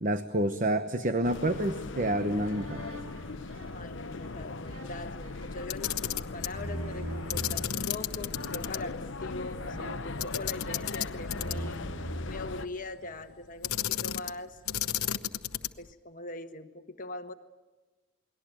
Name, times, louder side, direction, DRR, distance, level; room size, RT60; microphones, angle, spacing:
voice 1, 0.0-2.9, right 1 dB, 40° right, 9 dB, 1.0 m, -28 dB
sound 1, 1.2-12.7, left 3 dB, 60° left, 0.8 m, -39 dB
sound 2, 2.4-7.7 8.3-8.8 9.5-10.9 11.2-13.2, right 1 dB, 80° right, 5.8 m, -42 dB
voice 2, 3.7-11.8 12.3-14.6 15.8-17.3, left 2 dB, 40° left, 7 dB, 1.3 m, -41 dB
Camera, 5.6-6.6 7.3-8.8 9.1-9.2 10.2-11.8 13.6-14.4 14.7-15.9, left 11 dB, 90° left, 1.0 m, -33 dB
29.0 x 20.5 x 9.1 m, 1.2 s
head